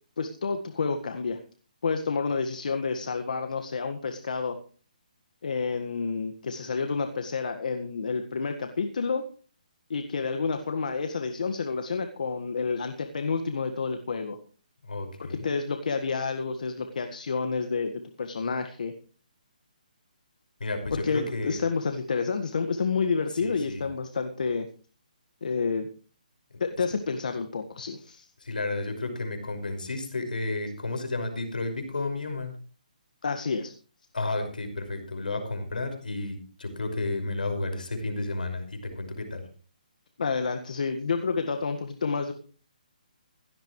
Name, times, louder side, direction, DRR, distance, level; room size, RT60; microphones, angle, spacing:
voice 1, 0.2-1.4 1.8-4.6 5.4-9.2 9.9-14.4 15.2-18.9 20.9-24.7 25.4-25.9 26.6-28.3 33.2-33.7 40.2-42.3, left 4 dB, 65° left, 6 dB, 1.7 m, -29 dB
voice 2, 14.8-15.5 20.6-21.6 23.4-23.9 28.4-32.5 34.1-39.4, left 2 dB, 80° left, 6 dB, 5.6 m, -32 dB
16.5 x 14.5 x 3.2 m, 0.41 s
hypercardioid pair, 150°, 5 cm